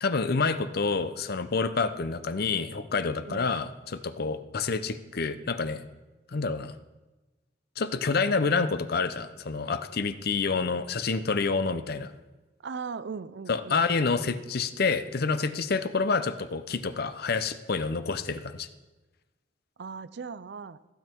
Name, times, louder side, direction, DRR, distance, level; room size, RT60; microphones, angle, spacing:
voice 1, 0.0-5.8 6.3-6.7 7.8-12.1 13.5-18.7, left 4 dB, 55° left, 12 dB, 0.6 m, -28 dB
voice 2, 12.6-13.8 19.8-20.8, right 5 dB, 60° right, 15 dB, 0.5 m, -38 dB
15.0 x 8.0 x 4.5 m, 1.1 s
head